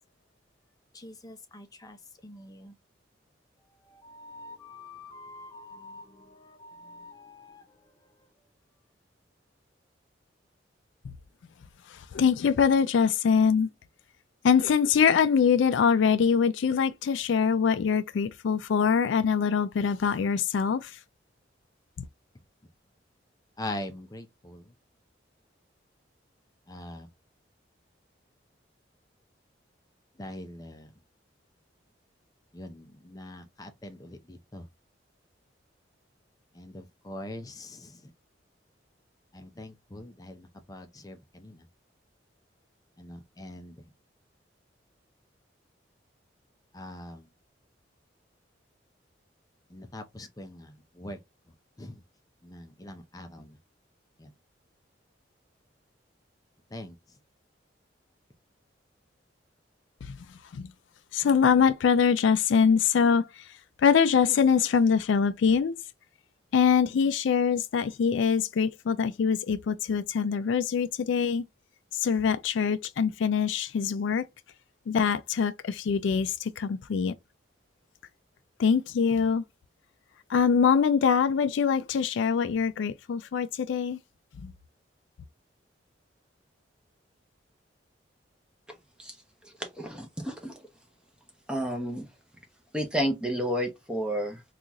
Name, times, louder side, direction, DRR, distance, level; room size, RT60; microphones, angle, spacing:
voice 1, 0.9-2.8 3.8-8.3 22.3-22.4 23.6-24.8 26.7-27.1 30.1-30.9 32.5-34.7 36.5-38.1 39.3-41.7 43.0-43.9 46.7-47.3 49.7-51.2 51.5-52.0 52.4-53.6 54.2-54.3 56.7-57.2, left 1 dB, 20° left, 0.5 m, -43 dB
voice 2, 11.9-13.7 14.4-21.0 22.0-22.1 60.0-60.2 60.5-60.7 61.1-63.5 63.8-65.8 66.5-71.5 71.9-74.3 74.9-77.1 78.6-79.4 80.3-84.0 84.4-84.5, left 6 dB, 75° left, 0.3 m, -24 dB
voice 3, 89.4-90.6 91.5-92.1 92.7-94.4, equal, 5° right, 0.8 m, -31 dB
3.7 x 2.4 x 2.8 m
head